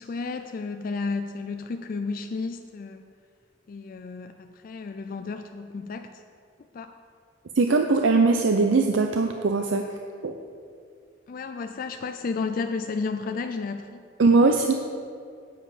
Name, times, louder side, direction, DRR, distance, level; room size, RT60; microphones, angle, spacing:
voice 1, 0.0-3.0 3.7-6.1 6.7-6.9 11.3-14.0, left 4 dB, 50° left, 7 dB, 0.4 m, -32 dB
voice 2, 7.6-9.9 10.2-10.4 14.2-14.7, right 3 dB, 90° right, 4 dB, 0.5 m, -20 dB
9.5 x 8.8 x 4.9 m, 2.3 s
head